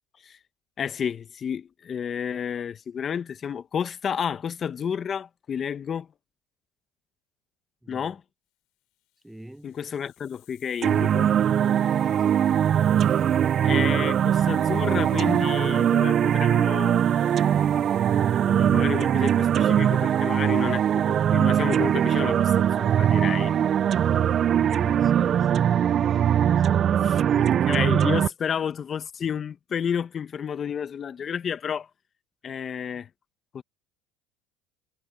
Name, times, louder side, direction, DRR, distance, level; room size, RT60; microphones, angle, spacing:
voice 1, 0.8-6.1 7.9-8.2 9.6-11.3 13.6-17.0 18.4-23.5 27.0-31.9 32.4-33.1 33.5-33.6, left 7 dB, 40° left, 1.3 m, -31 dB
voice 2, 7.8-8.1 9.2-9.7 24.5-27.5, right 1 dB, 5° right, 0.8 m, -42 dB
Hiss, 9.0-25.7, left 20 dB, 70° left, 3.8 m, -57 dB
sound 1, 10.8-28.3, right 9 dB, 45° right, 0.3 m, -21 dB
supercardioid pair, 100°, 0 cm